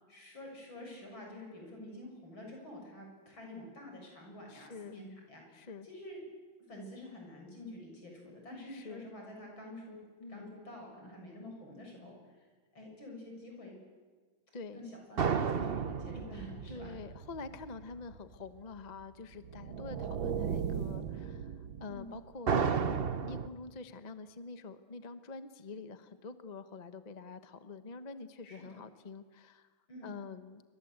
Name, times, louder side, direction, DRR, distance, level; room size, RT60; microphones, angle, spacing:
voice 1, 0.1-6.2 6.7-10.0 10.3-12.4 12.7-13.8 14.7-16.9 21.9-22.1 28.5-28.8 29.9-30.1, left 1 dB, 80° left, 1 dB, 8.3 m, -48 dB
voice 2, 4.5-5.0 5.5-5.9 8.7-9.0 10.2-10.6 14.5-14.8 16.7-22.7 23.3-29.7 30.0-30.6, left 4 dB, 25° left, 9 dB, 1.0 m, -46 dB
sound 1, 15.2-18.2 22.5-23.5, right 6 dB, 45° right, 0.8 m, -32 dB
sound 2, 19.4-22.3, right 8 dB, 80° right, 1.9 m, -37 dB
27.0 x 24.5 x 8.1 m, 1.5 s
omnidirectional pair, 2.1 m